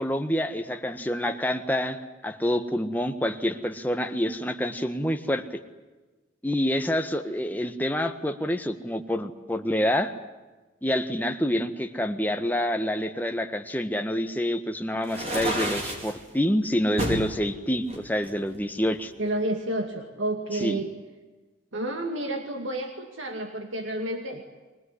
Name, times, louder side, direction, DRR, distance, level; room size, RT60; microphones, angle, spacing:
voice 1, 0.0-5.6 6.4-10.1 10.8-19.1 20.6-20.8, equal, 10° left, 5 dB, 1.5 m, -27 dB
sound 1, 15.0-16.1 17.0-17.3 17.9-19.0, right 1 dB, 30° right, 4.6 m, -30 dB
voice 2, 19.2-20.9 21.7-24.4, right 1 dB, 80° right, 4 dB, 2.4 m, -30 dB
24.0 x 20.0 x 9.8 m, 1.2 s
head